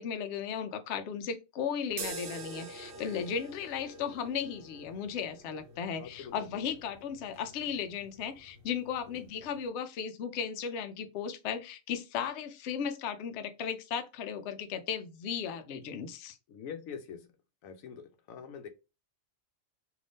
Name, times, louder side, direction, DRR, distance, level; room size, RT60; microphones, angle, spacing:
voice 1, 0.0-16.4, left 7 dB, 65° left, 0.8 m, -36 dB
sound 1, 1.9-9.7, right 3 dB, 50° right, 0.8 m, -47 dB
voice 2, 2.9-3.3 6.0-6.7 9.1-9.2 16.5-17.3 17.6-18.7, left 7 dB, 90° left, 1.0 m, -45 dB
2.7 x 2.6 x 3.4 m
omnidirectional pair, 1.4 m